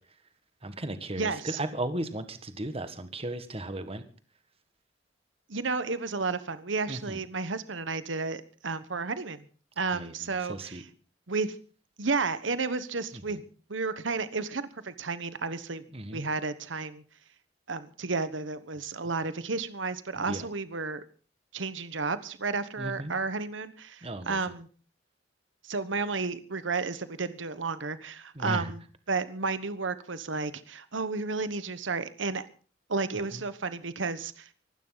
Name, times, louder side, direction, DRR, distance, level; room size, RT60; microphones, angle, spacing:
voice 1, 0.6-4.0 6.9-7.2 9.9-10.8 13.1-13.2 15.9-16.2 20.2-20.4 22.8-23.1 24.0-24.4 28.3-28.7 33.3-33.4, right 1 dB, 30° right, 10 dB, 1.6 m, -35 dB
voice 2, 1.1-1.6 5.5-9.4 9.8-10.9 11.3-11.5 12.0-13.4 13.7-15.8 16.1-17.0 17.7-21.0 21.5-24.7 25.6-28.8 29.1-32.5 32.9-34.5, right 4 dB, 85° right, 13 dB, 1.2 m, -32 dB
24.5 x 12.5 x 4.0 m, 0.40 s
head